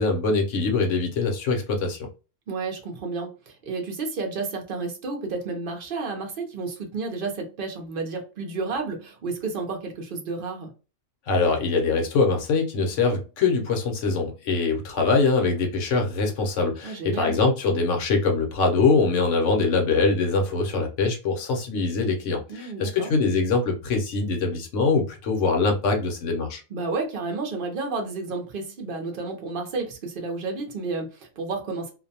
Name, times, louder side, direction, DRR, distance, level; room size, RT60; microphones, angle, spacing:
voice 1, 0.0-2.1 11.3-26.6, left 4 dB, 65° left, 0.9 m, -23 dB
voice 2, 2.5-10.7 16.8-17.4 22.5-23.1 26.7-31.9, right 3 dB, 50° right, 0.7 m, -31 dB
2.5 x 2.1 x 2.7 m
omnidirectional pair, 1.5 m